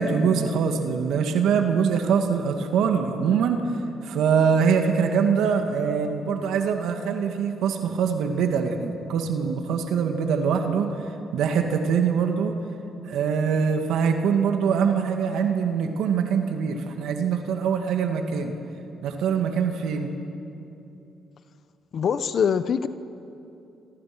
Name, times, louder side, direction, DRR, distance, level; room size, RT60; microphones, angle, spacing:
voice 1, 0.0-3.6 4.0-10.9 11.3-12.5 13.0-18.5 19.0-20.1, right 6 dB, 80° right, 4 dB, 2.2 m, -23 dB
voice 2, 21.9-22.9, left 7 dB, 60° left, 12 dB, 1.0 m, -23 dB
29.0 x 25.0 x 6.2 m, 2.8 s
cardioid pair, 90°, 0 cm